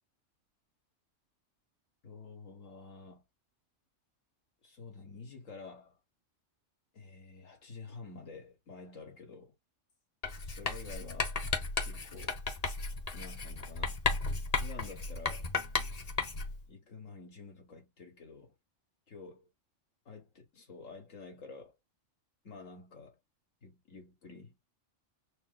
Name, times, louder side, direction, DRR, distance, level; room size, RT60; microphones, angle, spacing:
voice 1, 2.0-3.2 4.6-6.0 6.9-9.5 10.4-11.4 11.8-12.4 13.1-14.0 14.6-15.5 16.7-18.5 19.1-19.4 20.1-21.8 22.4-23.2 23.6-24.6, left 4 dB, 85° left, 2.0 m, -49 dB
Writing, 10.2-16.6, left 4 dB, 35° left, 0.7 m, -35 dB
4.1 x 2.0 x 3.9 m
omnidirectional pair, 1.3 m